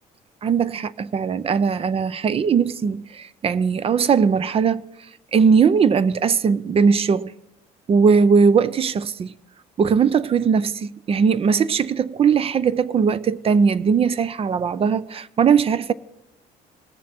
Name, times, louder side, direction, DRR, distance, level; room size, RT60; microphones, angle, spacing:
voice 1, 0.4-4.8 5.3-7.3 7.9-9.3 9.8-15.9, right 6 dB, 35° right, 0.5 m, -19 dB
20.0 x 7.2 x 4.3 m
cardioid pair, 110°, 17 cm